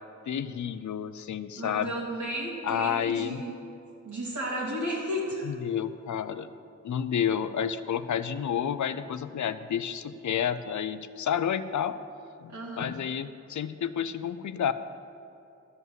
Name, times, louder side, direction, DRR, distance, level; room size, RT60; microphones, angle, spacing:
voice 1, 0.3-1.9 2.6-3.4 5.4-6.5 6.8-12.0 12.4-14.7, left 8 dB, 80° left, 13 dB, 0.5 m, -30 dB
voice 2, 1.6-3.5 4.0-5.5 12.5-12.9, equal, 80° right, -4 dB, 2.6 m, -33 dB
12.0 x 5.7 x 7.6 m, 2.7 s
wide cardioid pair, 60°, 29 cm